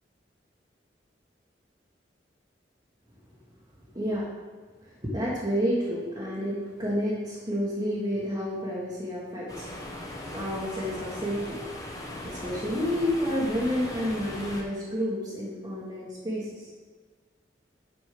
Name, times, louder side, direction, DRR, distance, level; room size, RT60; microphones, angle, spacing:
voice 1, 3.9-4.2 4.8-9.9 10.3-11.6 12.2-16.7, equal, 25° right, -7 dB, 1.6 m, -30 dB
sound 1, 9.5-14.6, left 1 dB, 20° left, 1.5 m, -38 dB
9.8 x 5.4 x 5.1 m, 1.5 s
head